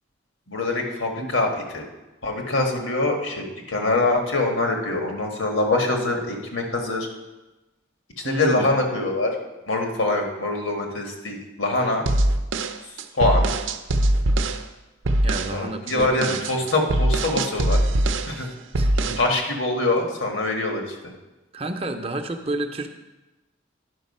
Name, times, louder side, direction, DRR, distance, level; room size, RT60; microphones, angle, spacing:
voice 1, 0.5-1.8 2.2-7.1 8.2-9.4 9.7-12.1 12.8-13.5 15.5-17.8 18.3-18.5 19.2-21.1, left 2 dB, 85° left, 2 dB, 1.6 m, -24 dB
voice 2, 8.2-8.7 15.2-16.6 18.3-19.2 21.5-22.9, right 2 dB, 30° right, 6 dB, 0.6 m, -31 dB
sound 1, 12.1-14.6 15.1-15.6 15.9-18.4 18.7-19.3, right 1 dB, 75° right, 0.6 m, -22 dB
10.5 x 5.5 x 5.4 m, 1.1 s
head